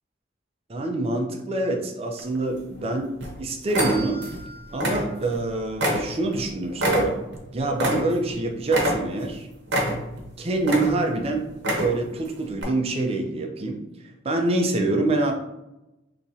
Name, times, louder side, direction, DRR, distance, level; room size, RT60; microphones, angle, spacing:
voice 1, 0.7-4.3 4.7-7.2 7.5-9.5 10.4-11.5 11.8-13.8 14.2-15.3, right 2 dB, 30° right, 3 dB, 0.5 m, -25 dB
sound 1, 2.2-2.8 3.2-3.4 3.7-4.4 4.7-5.4 5.8-8.4 8.7-9.3 9.7-10.2 10.6-11.2 11.5-12.1 12.6-12.7, equal, 60° right, 0.8 m, -26 dB
sound 2, 3.8-6.0, equal, 35° left, 1.3 m, -39 dB
3.6 x 2.9 x 2.7 m, 0.91 s
head